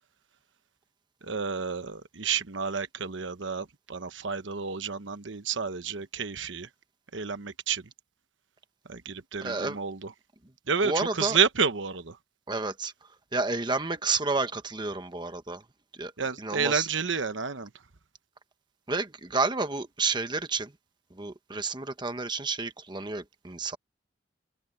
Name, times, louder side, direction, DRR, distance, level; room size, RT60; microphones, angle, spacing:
voice 1, 1.2-6.7 7.1-7.9 8.9-10.1 10.7-12.2 16.2-17.7, right 6 dB, 75° right, 1.1 m, -30 dB
voice 2, 9.4-9.8 10.8-11.4 12.5-12.9 13.3-15.6 15.9-16.1 16.4-16.9 18.9-20.7 21.1-23.8, right 3 dB, 25° right, 1.2 m, -30 dB
head